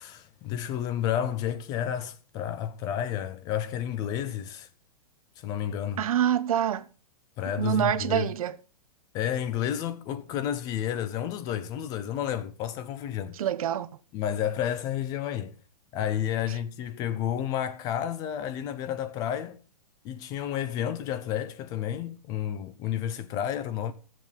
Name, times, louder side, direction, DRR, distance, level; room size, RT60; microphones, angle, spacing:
voice 1, 0.0-4.7 5.4-6.0 7.4-8.3 9.1-13.4 14.1-15.6 15.9-19.6 20.0-23.9, left 10 dB, 20° left, 0.5 m, -31 dB
voice 2, 6.0-6.9 7.6-8.6 13.3-13.9, right 10 dB, 60° right, 0.8 m, -26 dB
12.0 x 7.5 x 5.3 m
hypercardioid pair, 160°, 20 cm